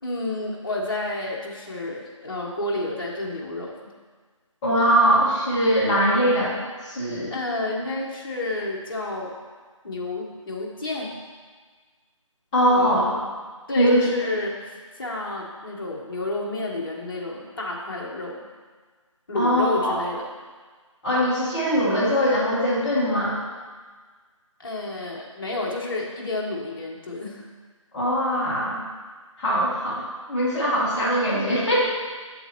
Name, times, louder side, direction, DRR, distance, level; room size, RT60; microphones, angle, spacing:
voice 1, 0.0-3.8 7.3-9.3 9.8-11.1 12.7-13.3 13.7-18.5 19.3-20.3 24.6-27.4, left 2 dB, 45° left, -2 dB, 1.4 m, -30 dB
voice 2, 4.6-6.5 6.8-7.3 12.5-13.0 13.8-14.1 19.3-20.0 21.0-23.3 27.9-28.8 29.4-31.8, equal, 15° left, -11 dB, 1.5 m, -21 dB
8.0 x 7.2 x 3.0 m, 1.5 s
figure-of-eight pair, 160°, 17 cm